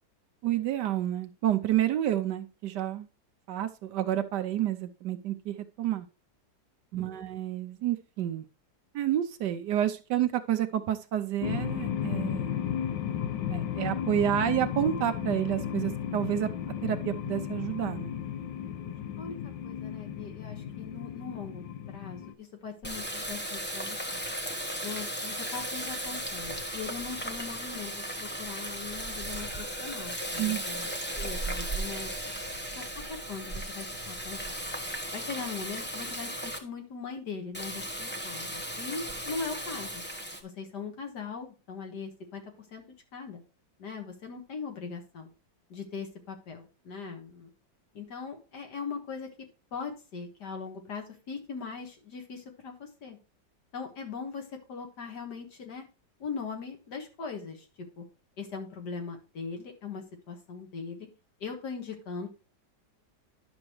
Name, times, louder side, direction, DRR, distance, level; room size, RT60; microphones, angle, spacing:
voice 1, 0.4-3.1 3.5-6.1 6.9-8.5 8.9-12.5 13.5-16.5 16.8-18.1 30.4-30.9, right 11 dB, 75° right, 9 dB, 1.2 m, -29 dB
voice 2, 6.9-7.3 18.6-18.8 19.2-19.4 19.6-21.6 21.9-24.2 24.8-32.1 32.8-34.6 35.1-40.0 40.4-42.8 43.1-43.4 43.8-45.3 45.7-47.5 47.9-49.3 49.7-53.2 53.7-55.8 56.2-57.7 58.0-58.1 58.4-61.1 61.4-62.3, left 5 dB, 60° left, 3 dB, 2.1 m, -40 dB
sound 1, 11.4-22.3, left 9 dB, 80° left, 1.5 m, -34 dB
Water tap faucet, 22.8-36.6 37.5-40.4, right 1 dB, 10° left, 0.7 m, -36 dB
10.5 x 6.2 x 3.1 m, 0.33 s
omnidirectional pair, 2.0 m